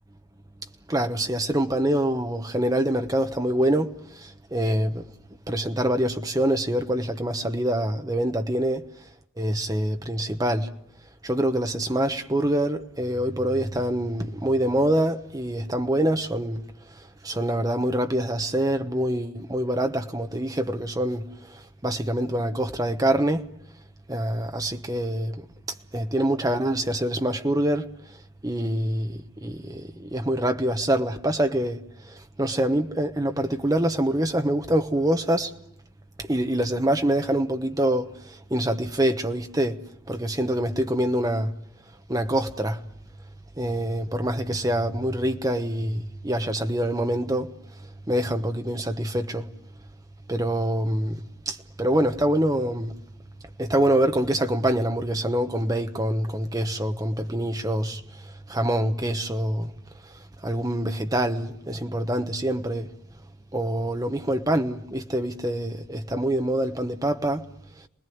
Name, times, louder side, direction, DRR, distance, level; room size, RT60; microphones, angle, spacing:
voice 1, 0.9-3.9 4.5-5.0 5.5-8.8 9.4-10.7 11.2-16.6 17.2-21.2 21.8-23.4 24.1-25.3 25.9-27.9 28.4-31.8 32.4-35.5 36.3-38.1 38.5-39.7 40.1-41.5 42.1-42.8 43.6-47.5 48.1-49.5 50.3-51.2 51.5-52.9 53.6-58.0 58.5-59.7 60.4-62.9 63.5-67.4, right 1 dB, 15° right, 1.0 m, -25 dB
28.0 x 19.5 x 9.3 m
head